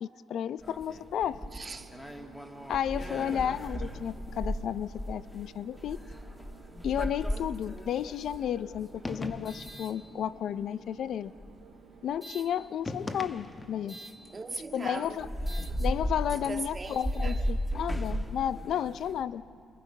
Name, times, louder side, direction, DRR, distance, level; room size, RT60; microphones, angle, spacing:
voice 1, 0.0-1.4 2.7-6.0 6.8-11.3 12.0-14.0 14.7-15.3 15.8-19.4, left 9 dB, 70° left, 0.5 m, -32 dB
sound 1, 0.6-10.6 11.3-12.5 13.9-14.2 14.7-14.8 15.1-19.2, equal, 10° left, 1.6 m, -36 dB
sound 2, 0.8-19.3, right 6 dB, 90° right, 2.1 m, -55 dB
voice 2, 1.5-1.9 14.3-15.6 16.3-17.4, right 3 dB, 30° right, 1.7 m, -40 dB
sound 3, 9.0-9.8 12.8-13.9, left 2 dB, 30° left, 1.2 m, -38 dB
30.0 x 22.5 x 5.4 m
cardioid pair, 90°, 0 cm